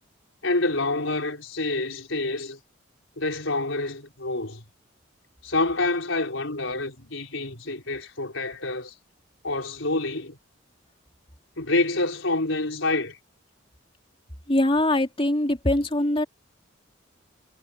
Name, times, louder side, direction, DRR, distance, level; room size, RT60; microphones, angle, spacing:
voice 1, 0.4-2.6 3.2-4.6 5.4-9.0 9.4-10.4 11.6-13.2, left 2 dB, 80° left, 4.4 m, -27 dB
voice 2, 14.5-16.3, left 1 dB, 30° left, 3.3 m, -22 dB
head